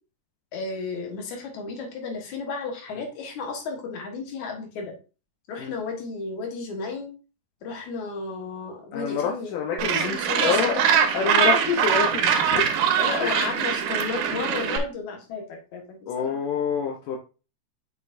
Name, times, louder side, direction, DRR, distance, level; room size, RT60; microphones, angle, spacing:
voice 1, 0.5-4.9 5.5-7.1 7.6-9.6 10.1-10.8 13.0-16.4, left 4 dB, 65° left, 2 dB, 2.8 m, -33 dB
voice 2, 8.9-10.8 11.1-12.6 13.2-13.4 16.1-17.2, left 7 dB, 85° left, 1 dB, 2.5 m, -27 dB
Gull seagull, 9.8-14.8, right 7 dB, 80° right, 2.4 m, -23 dB
6.7 x 6.5 x 2.6 m, 0.33 s
omnidirectional pair, 3.6 m